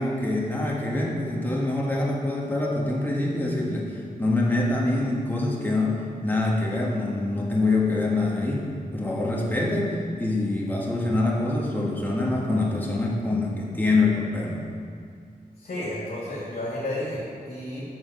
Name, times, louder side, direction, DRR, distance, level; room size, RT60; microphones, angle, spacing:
voice 1, 0.0-8.7 8.9-14.6, left 2 dB, 10° left, -3 dB, 1.6 m, -25 dB
voice 2, 15.6-17.8, left 1 dB, 65° left, -7 dB, 2.5 m, -32 dB
8.7 x 6.7 x 6.0 m, 2.2 s
wide cardioid pair, 130°, 15 cm